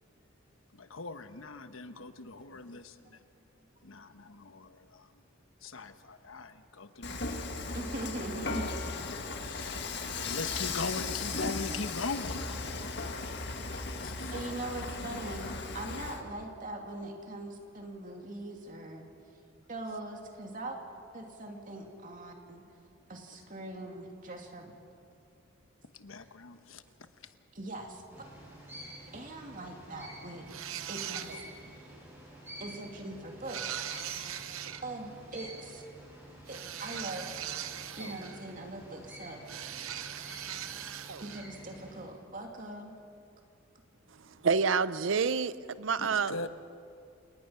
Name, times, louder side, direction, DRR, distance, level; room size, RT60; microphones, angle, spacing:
voice 1, 0.7-3.2 3.8-5.1 5.6-7.3 7.6-7.7 9.4-12.9 13.2-13.4 14.0-14.3 25.9-26.8 46.0-46.5, left 3 dB, 80° left, 1.1 m, -41 dB
Dishes pots and pans / Frying (food), 7.0-16.2, left 3 dB, 55° left, 1.8 m, -36 dB
voice 2, 7.7-8.7 14.3-19.0 19.7-20.8 21.1-22.6 23.1-24.7 27.5-28.0 29.1-30.5 30.9-31.4 32.6-33.8 34.8-35.8 36.5-37.3 38.0-39.4 41.2-43.0, right 1 dB, 40° right, 2.6 m, -41 dB
sound 1, 28.1-42.0, right 1 dB, 10° right, 8.0 m, -49 dB
sound 2, 30.5-31.6 33.4-34.9 36.5-38.5 39.5-41.5, right 10 dB, 90° right, 0.9 m, -40 dB
voice 3, 44.4-46.3, right 5 dB, 70° right, 0.6 m, -28 dB
29.0 x 19.0 x 5.8 m
head